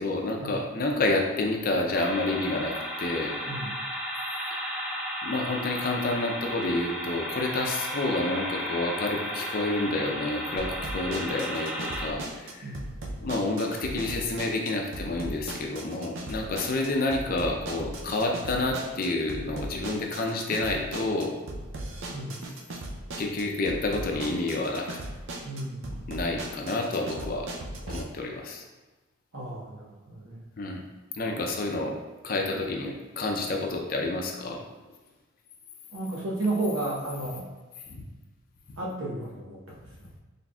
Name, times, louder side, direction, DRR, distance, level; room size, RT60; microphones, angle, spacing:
voice 1, 0.0-3.4 5.2-12.7 13.2-21.4 23.2-24.9 26.1-27.5 27.9-28.6 30.6-30.8 31.1-32.0 32.2-34.6, left 2 dB, 45° left, 1 dB, 0.5 m, -29 dB
sound 1, 1.9-12.1, equal, 5° right, 0.5 m, -34 dB
voice 2, 3.5-3.8 12.6-12.9 22.1-22.4 25.4-26.2 29.3-30.5 35.9-37.5 38.8-40.1, right 2 dB, 90° right, -4 dB, 1.0 m, -33 dB
sound 2, 10.6-28.0, right 1 dB, 70° right, 0.5 m, -38 dB
4.1 x 3.4 x 2.3 m, 1.2 s
head